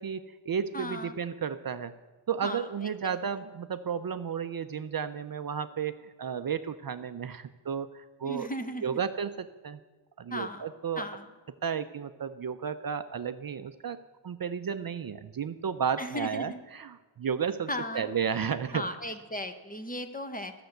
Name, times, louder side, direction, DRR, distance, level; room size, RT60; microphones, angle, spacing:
voice 1, 0.0-1.9 2.3-8.5 8.8-9.8 10.2-11.0 11.6-14.0 14.2-17.7 17.9-18.9, right 7 dB, 50° right, 11 dB, 0.5 m, -33 dB
voice 2, 0.7-1.1 2.4-2.7 3.0-3.2 8.2-9.0 10.3-10.7 11.0-11.2 16.0-16.6 17.7-18.1 18.7-20.5, left 1 dB, 15° left, 8 dB, 0.7 m, -36 dB
13.0 x 6.9 x 7.8 m, 1.2 s
wide cardioid pair, 130°, 48 cm